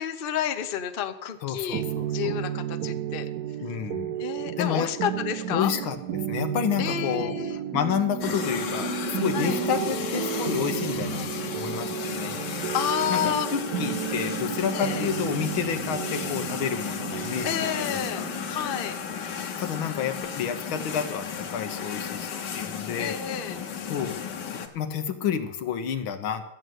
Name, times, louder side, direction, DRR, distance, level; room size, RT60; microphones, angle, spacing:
voice 1, 0.0-1.8 2.1-3.3 4.2-5.7 6.8-7.6 9.3-9.6 12.7-13.5 14.7-15.1 17.4-18.2 18.5-19.0 23.0-23.6, left 9 dB, 45° left, 9 dB, 0.7 m, -30 dB
voice 2, 1.4-2.4 3.6-4.2 4.6-4.9 5.5-7.4 7.7-12.4 13.1-18.3 19.6-23.2 23.9-24.2 24.7-26.4, left 8 dB, 85° left, 8 dB, 1.9 m, -30 dB
sound 1, 1.7-21.3, right 11 dB, 70° right, 1.0 m, -33 dB
sound 2, 8.2-24.7, left 7 dB, 60° left, 1.7 m, -34 dB
13.0 x 7.8 x 9.1 m, 0.84 s
omnidirectional pair, 2.2 m